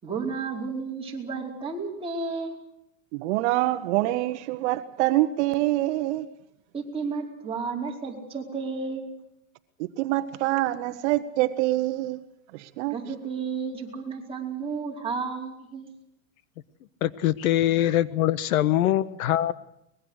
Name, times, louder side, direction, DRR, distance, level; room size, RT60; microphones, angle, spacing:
voice 1, 0.0-2.5 6.7-9.1 12.9-15.9, right 5 dB, 15° right, -3 dB, 4.7 m, -32 dB
voice 2, 3.1-6.3 10.0-12.2 12.8-12.9, right 16 dB, 55° right, 10 dB, 1.2 m, -25 dB
voice 3, 17.0-19.5, left 13 dB, 85° left, 15 dB, 1.3 m, -23 dB
24.0 x 21.5 x 6.5 m, 0.80 s
supercardioid pair, 155°, 41 cm